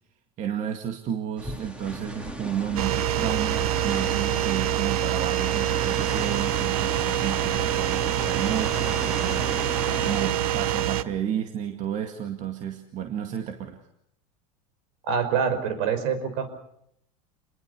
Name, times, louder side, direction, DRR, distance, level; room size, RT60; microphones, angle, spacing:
voice 1, 0.4-9.7 10.0-13.8, right 9 dB, 40° right, 5 dB, 2.2 m, -32 dB
sound 1, 1.4-10.3, equal, 5° right, 2.8 m, -36 dB
sound 2, 2.8-11.0, right 12 dB, 80° right, 1.1 m, -26 dB
voice 2, 15.0-16.5, right 6 dB, 60° right, 10 dB, 5.4 m, -25 dB
27.5 x 21.0 x 6.8 m, 0.75 s
supercardioid pair, 130°, 19 cm